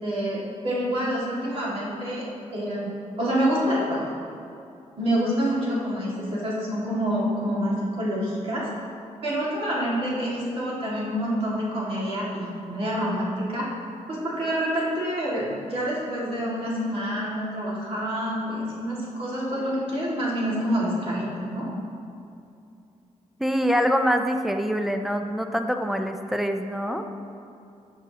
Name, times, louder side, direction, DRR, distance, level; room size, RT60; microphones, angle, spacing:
voice 1, 0.0-2.3 2.5-2.9 3.2-4.1 5.0-8.7 9.2-13.7 14.1-21.7, equal, 50° right, -6 dB, 2.1 m, -27 dB
voice 2, 23.4-27.1, equal, ahead, 6 dB, 0.4 m, -25 dB
11.0 x 7.0 x 2.9 m, 2.6 s
wide cardioid pair, 160°, 12 cm